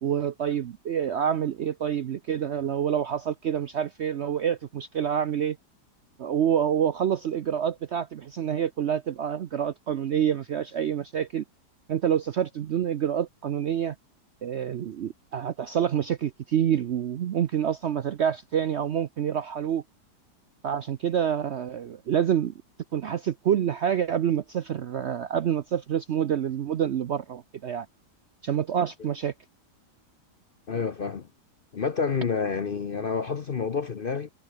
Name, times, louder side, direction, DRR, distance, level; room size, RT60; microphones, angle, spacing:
voice 1, 0.0-5.6 6.2-11.4 11.9-13.9 14.4-19.8 20.6-22.5 22.9-27.9 28.4-29.3, right 9 dB, 60° right, 0.7 m, -27 dB
voice 2, 30.7-31.3 31.7-34.3, left 5 dB, 45° left, 0.7 m, -28 dB
omnidirectional pair, 1.8 m